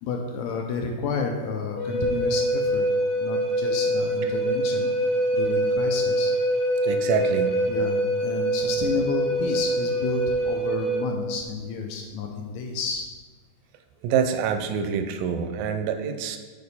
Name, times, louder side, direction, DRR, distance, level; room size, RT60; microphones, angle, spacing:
voice 1, 0.0-2.9 3.2-4.9 5.3-6.3 7.7-13.1, left 4 dB, 85° left, 3 dB, 1.6 m, -31 dB
Wind instrument woodwind instrument, 1.8-11.1, right 1 dB, 60° left, 2.0 m, -24 dB
voice 2, 6.8-7.5 14.0-16.4, right 7 dB, 85° right, 7 dB, 2.2 m, -26 dB
6.9 x 5.1 x 4.1 m, 1.4 s
omnidirectional pair, 3.8 m